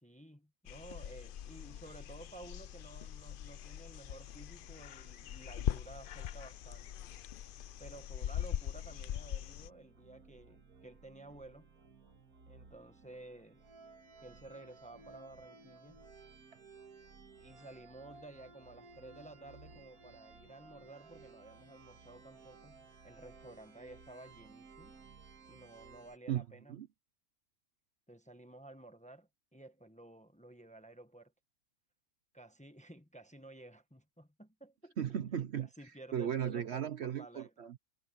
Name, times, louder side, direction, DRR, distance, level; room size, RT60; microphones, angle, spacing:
voice 1, 0.0-6.9 7.8-11.7 12.5-13.6 14.2-16.0 17.4-25.0 25.5-26.8 28.1-31.3 32.3-35.0 35.6-37.5, right 2 dB, 5° left, 1.0 m, -53 dB
sound 1, 0.7-9.7, left 11 dB, 85° left, 0.4 m, -41 dB
sound 2, 8.7-26.2, right 4 dB, 90° right, 2.3 m, -57 dB
voice 2, 35.0-35.7 36.1-37.8, right 9 dB, 55° right, 0.9 m, -36 dB
omnidirectional pair, 1.5 m